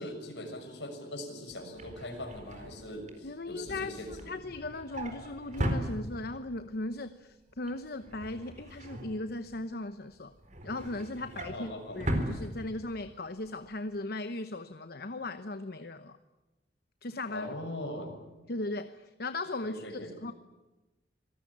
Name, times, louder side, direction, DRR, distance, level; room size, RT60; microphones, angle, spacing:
voice 1, 0.0-4.3 11.5-12.0 17.3-18.2 19.6-20.2, left 1 dB, 90° left, 5 dB, 6.3 m, -41 dB
Drawer open or close, 1.5-6.5 6.9-7.2 7.5-9.7 10.1-13.1 13.5-13.7 13.9-14.0, equal, 45° right, 4.3 m, -38 dB
voice 2, 3.2-10.3 10.6-16.2 17.0-17.5 18.5-20.3, left 2 dB, 60° left, 10 dB, 1.0 m, -38 dB
26.0 x 19.0 x 10.0 m, 1.1 s
head